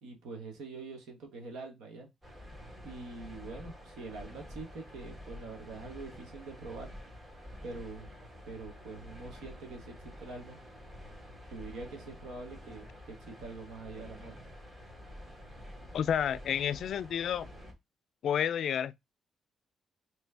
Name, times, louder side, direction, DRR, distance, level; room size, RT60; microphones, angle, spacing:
voice 1, 0.0-2.1 2.8-6.9 7.6-8.1 8.4-10.6 11.5-14.4, right 3 dB, 85° right, 1.2 m, -44 dB
sound 1, 2.2-17.7, equal, 25° right, 1.9 m, -49 dB
voice 2, 15.9-17.5 18.2-19.0, left 9 dB, 70° left, 0.3 m, -30 dB
3.3 x 3.2 x 3.2 m
cardioid pair, 75°, 0 cm